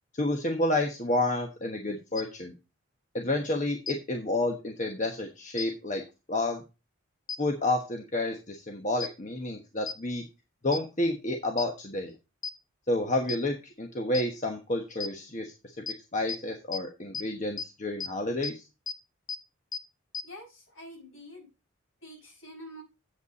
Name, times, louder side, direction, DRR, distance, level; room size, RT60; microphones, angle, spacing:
voice 1, 0.1-2.5 3.1-6.0 6.3-6.6 7.4-10.2 10.6-12.1 12.9-15.5 16.1-18.6, left 2 dB, 35° left, 3 dB, 1.2 m, -30 dB
sound 1, 2.2-2.3 3.9-4.0 5.6-5.7 7.3-7.4 9.0-9.1 9.9-10.0 10.7-10.8 11.6-11.7 12.4-12.5 13.3-13.4 14.1-14.2 15.0-15.1 15.9-16.0 16.3-16.4 16.7-16.8 17.1-17.2 17.6-17.7 18.0-18.1 18.4-18.5 18.9-19.0 19.3-19.4 19.7-19.8 20.1-20.2, left 6 dB, 20° left, 0.6 m, -33 dB
voice 2, 20.2-21.5 22.0-22.8, equal, 70° left, 1 dB, 6.4 m, -46 dB
8.3 x 8.2 x 4.1 m, 0.28 s
head